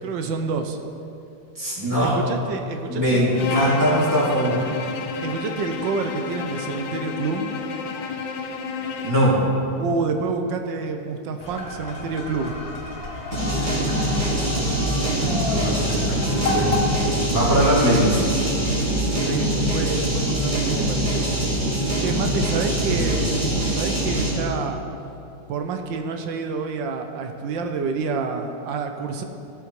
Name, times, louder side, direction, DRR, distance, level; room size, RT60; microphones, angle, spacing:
voice 1, 0.0-0.8 2.0-3.3 5.2-7.5 9.8-12.5 19.1-21.3 22.0-23.3 23.7-24.8 25.5-29.2, right 4 dB, 80° right, 5 dB, 1.4 m, -28 dB
voice 2, 1.6-2.1 2.9-4.6 9.0-9.4 15.1-16.8 17.3-18.2 22.9-23.2, equal, 10° right, -8 dB, 2.4 m, -21 dB
Bowed string instrument, 3.3-9.4, left 4 dB, 75° left, 1.4 m, -30 dB
sound 1, 11.4-16.9, left 2 dB, 40° left, 1.2 m, -31 dB
sound 2, 13.3-24.5, right 1 dB, 45° right, 3.2 m, -23 dB
14.5 x 8.2 x 3.1 m, 2.6 s
omnidirectional pair, 2.1 m